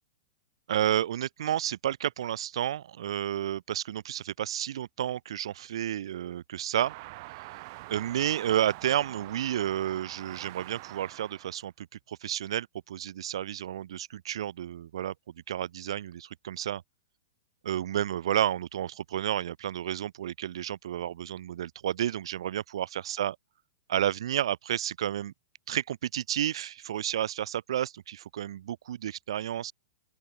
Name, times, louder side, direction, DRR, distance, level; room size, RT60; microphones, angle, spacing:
voice 1, 0.7-6.9 7.3-7.4 7.9-15.1 15.5-16.8 17.6-23.4 23.9-25.3 25.7-29.7, right 11 dB, 75° right, 1.0 m, -31 dB
sound 1, 6.7-11.7, right 24 dB, 45° right, 6.2 m, -45 dB
open air
hypercardioid pair, 145°, 3 cm